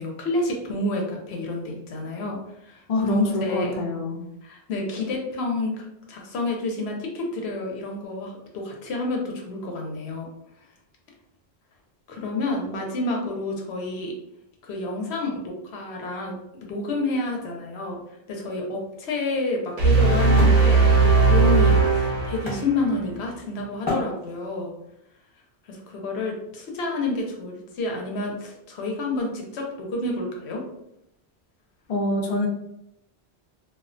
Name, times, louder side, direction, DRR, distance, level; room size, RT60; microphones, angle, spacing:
voice 1, 0.0-2.4 2.6-3.7 4.4-10.3 12.1-14.1 14.6-16.3 16.6-18.0 18.3-24.7 25.7-30.6, left 2 dB, 90° left, 0 dB, 0.9 m, -29 dB
voice 2, 2.9-4.2 31.9-32.5, left 2 dB, 55° left, 1 dB, 0.5 m, -24 dB
Wood, 18.9-23.3 23.8-24.7, left 2 dB, 30° left, 0.9 m, -33 dB
sound 1, 19.8-23.0, right 4 dB, 70° right, 0.8 m, -18 dB
2.3 x 2.1 x 2.4 m, 0.82 s
omnidirectional pair, 1.1 m